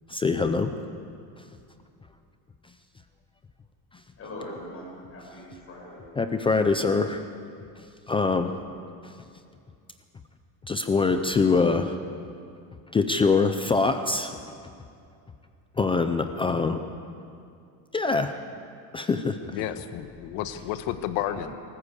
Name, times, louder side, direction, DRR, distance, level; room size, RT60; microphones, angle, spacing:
voice 1, 0.1-0.7 6.2-7.2 8.1-8.5 9.0-9.1 10.7-12.0 12.9-14.4 15.8-16.8 17.9-18.3 18.9-19.4, left 4 dB, 10° left, 7 dB, 0.4 m, -23 dB
voice 2, 4.2-6.0 21.2-21.6, left 1 dB, 25° left, -2 dB, 7.2 m, -41 dB
voice 3, 19.5-21.5, left 12 dB, 65° left, 10 dB, 1.4 m, -31 dB
23.5 x 14.0 x 8.3 m, 2.5 s
cardioid pair, 145°, 48 cm